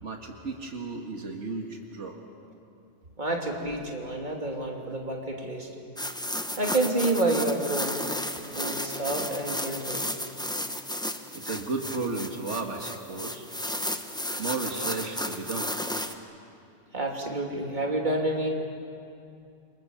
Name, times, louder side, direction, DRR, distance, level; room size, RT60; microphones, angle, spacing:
voice 1, 0.0-2.2 11.3-13.5 14.4-15.7, right 3 dB, 85° right, 2 dB, 2.1 m, -34 dB
voice 2, 3.2-5.7 6.6-8.0 8.5-10.0 16.9-18.5, right 2 dB, 40° right, 0 dB, 3.1 m, -29 dB
sound 1, 6.0-16.1, equal, 5° left, 1.0 m, -33 dB
28.0 x 25.5 x 7.4 m, 2.5 s
omnidirectional pair, 1.2 m